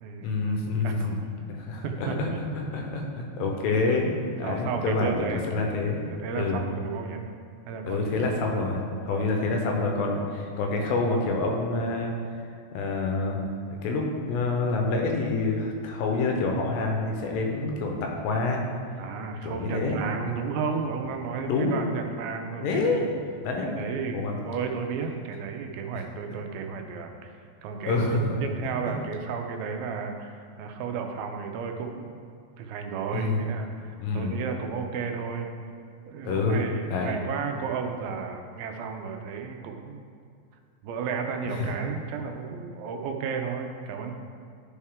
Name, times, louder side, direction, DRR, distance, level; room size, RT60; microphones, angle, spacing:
voice 1, 0.2-1.2 1.5-6.0 6.3-6.6 7.8-12.1 12.7-13.4 13.8-18.6 19.4-20.0 21.4-21.8 22.6-23.8 24.1-24.4 27.9-28.2 33.1-33.4 34.0-34.3 36.2-36.6 36.9-37.1 41.6-41.7, left 3 dB, 85° left, 1 dB, 2.5 m, -27 dB
voice 2, 0.8-1.2 1.8-2.4 3.7-3.8 4.4-5.7 6.1-7.2 7.7-8.1 9.1-9.5 19.0-23.1 23.6-28.0 28.4-32.1 32.6-35.5 36.1-40.0 40.8-44.1, right 5 dB, 85° right, 4 dB, 2.5 m, -33 dB
10.5 x 4.2 x 3.6 m, 2.3 s
omnidirectional pair, 4.3 m